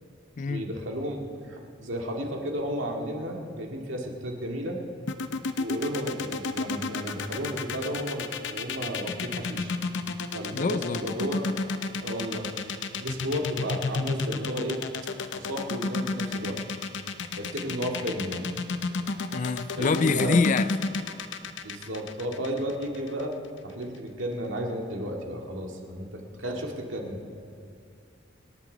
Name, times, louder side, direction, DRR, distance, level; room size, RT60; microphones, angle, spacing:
voice 1, 0.5-1.2 1.5-4.8 5.6-9.7 10.3-11.5 12.0-12.5 13.0-14.8 15.4-16.6 17.4-18.5 19.8-20.4 21.6-23.3 23.6-27.2, equal, 80° right, 2.0 m, -33 dB
sound 1, 5.1-23.2, left 3 dB, 70° left, 0.7 m, -31 dB
voice 2, 10.5-11.0 19.3-20.7, left 4 dB, 40° left, 0.3 m, -25 dB
26.5 x 10.0 x 4.0 m
head